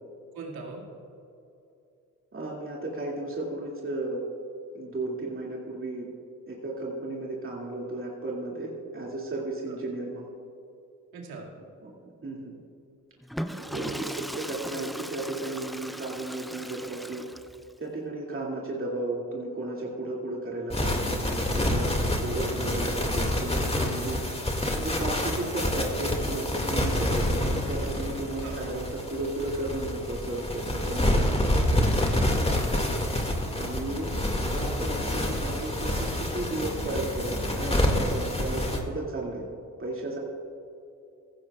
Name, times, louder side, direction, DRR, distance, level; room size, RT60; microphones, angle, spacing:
voice 1, 0.3-0.8 9.7-9.8 11.1-11.5 13.7-14.0 28.4-28.6 32.2-32.9, right 4 dB, 75° right, -1 dB, 2.3 m, -41 dB
voice 2, 2.3-4.2 4.7-6.1 6.5-10.3 11.8-11.9 12.2-12.6 13.5-17.2 17.8-24.3 24.7-31.3 33.6-39.5 39.8-40.2, right 2 dB, 35° right, -4 dB, 2.5 m, -34 dB
Water / Toilet flush, 13.2-17.7, equal, ahead, 0.5 m, -38 dB
sound 1, 20.7-38.8, left 1 dB, 15° left, 2.1 m, -27 dB
16.0 x 15.0 x 2.4 m, 2.7 s
hypercardioid pair, 45°, 38 cm